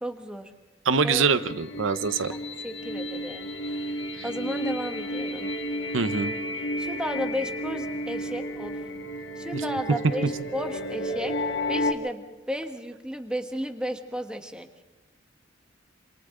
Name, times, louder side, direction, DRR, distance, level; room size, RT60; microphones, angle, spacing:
voice 1, 0.0-0.5 1.0-1.2 2.3-2.4 2.6-5.5 6.8-8.8 9.4-11.4 11.7-14.7, equal, 5° right, 5 dB, 1.5 m, -34 dB
voice 2, 0.8-2.3 5.9-6.3 9.5-9.6, right 5 dB, 90° right, 12 dB, 0.8 m, -24 dB
sound 1, 1.3-11.9, equal, 65° left, 1.9 m, -32 dB
27.0 x 27.0 x 3.9 m, 1.1 s
head